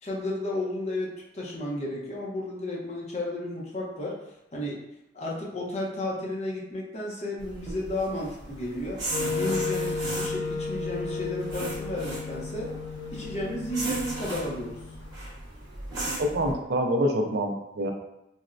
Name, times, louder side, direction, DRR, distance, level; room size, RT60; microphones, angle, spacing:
voice 1, 0.0-4.2 4.5-4.8 5.1-9.0 9.3-12.7 13.1-14.7, left 1 dB, 35° left, -3 dB, 0.6 m, -33 dB
sound 1, 7.4-16.5, right 2 dB, 20° right, 0.8 m, -37 dB
Wind instrument woodwind instrument, 9.1-15.1, left 4 dB, 80° left, 0.3 m, -34 dB
voice 2, 16.2-17.9, equal, 60° right, 3 dB, 0.4 m, -26 dB
4.0 x 2.1 x 2.4 m, 0.85 s
head